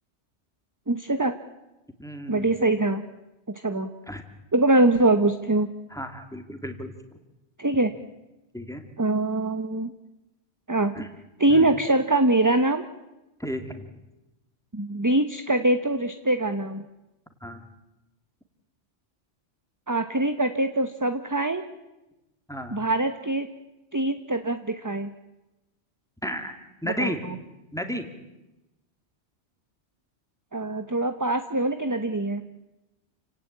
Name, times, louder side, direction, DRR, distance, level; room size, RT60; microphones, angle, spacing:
voice 1, 0.9-1.3 2.3-3.0 3.5-3.9 4.5-5.7 7.6-7.9 9.0-9.9 10.7-10.9 11.4-12.9 14.7-16.9 19.9-21.7 22.7-23.5 23.9-25.1 26.8-27.3 30.5-32.4, right 2 dB, 15° right, 8 dB, 1.0 m, -23 dB
voice 2, 2.0-2.6 4.1-4.2 5.9-6.9 8.5-8.8 10.9-11.1 11.5-11.7 13.4-13.8 17.4-17.6 22.5-22.8 26.2-26.5 26.8-27.2 27.7-28.0, equal, 5° left, 6 dB, 2.6 m, -32 dB
29.0 x 18.0 x 8.7 m, 0.99 s
omnidirectional pair, 1.2 m